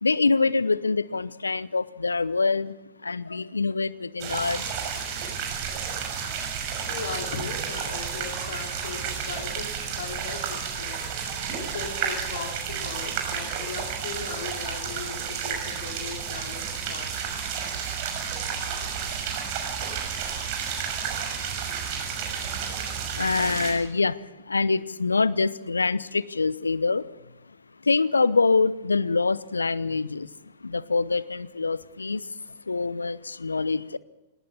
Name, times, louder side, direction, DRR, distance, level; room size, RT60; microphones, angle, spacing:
voice 1, 0.0-2.8 3.0-4.7 23.2-27.0 27.8-30.3 30.6-32.3 32.7-34.0, left 4 dB, 80° left, 19 dB, 0.8 m, -25 dB
sound 1, 4.2-23.7, right 7 dB, 45° right, 6.3 m, -31 dB
voice 2, 6.8-9.7 10.0-11.0 11.6-17.2 19.2-19.4, left 5 dB, 60° left, 3 dB, 3.7 m, -38 dB
20.0 x 19.0 x 7.1 m, 1.0 s
figure-of-eight pair, 100°, 0 cm